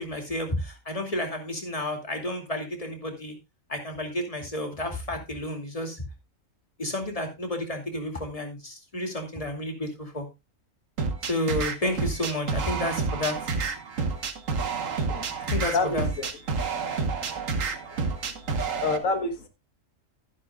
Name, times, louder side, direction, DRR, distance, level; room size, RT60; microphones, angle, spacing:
voice 1, 0.0-3.3 3.7-6.0 6.8-10.3 11.2-13.4 15.5-16.1, left 1 dB, 25° left, 4 dB, 2.6 m, -31 dB
sound 1, 11.0-19.0, right 4 dB, 80° right, 1.7 m, -29 dB
voice 2, 15.7-16.3 16.9-18.1 18.8-19.5, left 3 dB, 90° left, 7 dB, 1.8 m, -30 dB
13.0 x 11.0 x 2.4 m, 0.22 s
omnidirectional pair, 1.3 m